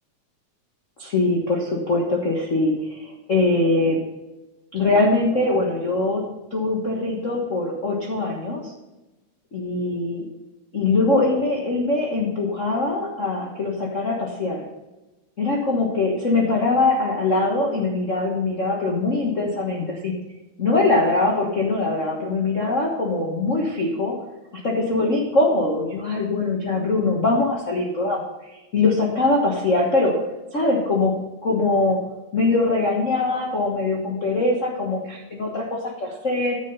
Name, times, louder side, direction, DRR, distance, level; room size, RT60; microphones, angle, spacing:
voice 1, 1.0-4.0 4.7-6.2 6.5-8.6 9.5-10.3 10.7-14.6 15.4-20.1 20.6-24.2 24.6-30.2 30.5-31.1 31.4-32.0 32.3-36.6, left 2 dB, 85° left, -1 dB, 0.6 m, -22 dB
10.0 x 7.2 x 5.4 m, 1.0 s
omnidirectional pair, 3.6 m